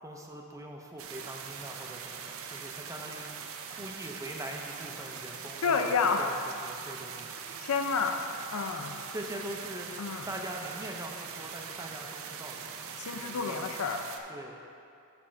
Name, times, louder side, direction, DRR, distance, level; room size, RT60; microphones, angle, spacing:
voice 1, 0.0-6.3 6.6-7.3 8.8-9.9 10.3-12.8 13.1-13.7 14.3-14.6, right 1 dB, 15° right, 1 dB, 0.6 m, -42 dB
sound 1, 1.0-14.2, right 6 dB, 65° right, 0.5 m, -42 dB
voice 2, 5.6-6.3 7.6-8.2 8.5-8.9 10.0-10.3 13.0-14.0, left 5 dB, 75° left, 5 dB, 0.5 m, -29 dB
8.4 x 3.5 x 6.3 m, 2.6 s
head